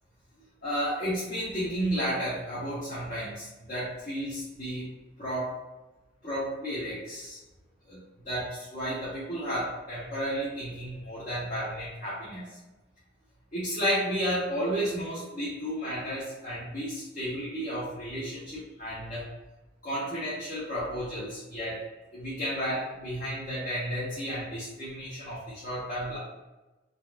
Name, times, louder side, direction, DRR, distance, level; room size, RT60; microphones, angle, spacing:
voice 1, 0.6-4.9 5.2-5.5 6.2-7.4 7.9-12.6 13.5-19.3 19.8-21.8 22.1-26.2, equal, 40° left, -11 dB, 1.0 m, -32 dB
3.9 x 2.5 x 2.5 m, 1.1 s
head